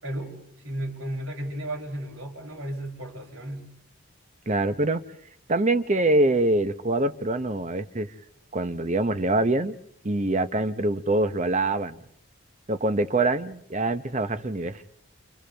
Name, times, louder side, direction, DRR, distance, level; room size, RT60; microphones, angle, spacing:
voice 1, 0.0-3.7, right 1 dB, 85° right, -2 dB, 6.6 m, -34 dB
voice 2, 4.5-5.0 5.5-8.1 8.5-9.8 10.0-12.0 12.7-14.8, right 2 dB, 35° right, 11 dB, 0.8 m, -24 dB
29.5 x 29.0 x 3.4 m, 0.70 s
head